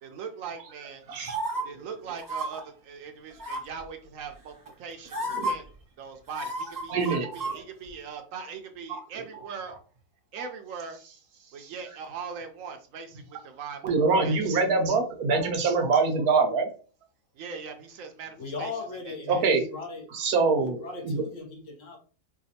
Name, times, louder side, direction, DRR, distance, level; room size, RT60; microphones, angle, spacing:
voice 1, 0.0-1.0 1.6-5.7 6.0-9.8 10.3-11.0 11.5-13.9 14.2-14.5 17.3-18.7 19.1-19.4, right 6 dB, 70° right, 0.9 m, -40 dB
voice 2, 1.1-1.6 3.5-3.6 5.3-5.5 6.9-7.6 8.9-9.0 11.6-11.7 13.8-16.7 19.3-19.7 20.1-21.2, right 4 dB, 85° right, 1.3 m, -25 dB
sound 1, 1.3-1.6 2.2-2.5 3.4-3.8 4.7-4.8 5.1-5.5 6.3-7.6 7.9-8.0, right 1 dB, 25° right, 0.4 m, -31 dB
voice 3, 18.4-20.1 20.5-22.0, left 3 dB, 60° left, 1.2 m, -38 dB
4.9 x 2.3 x 2.7 m
omnidirectional pair, 1.6 m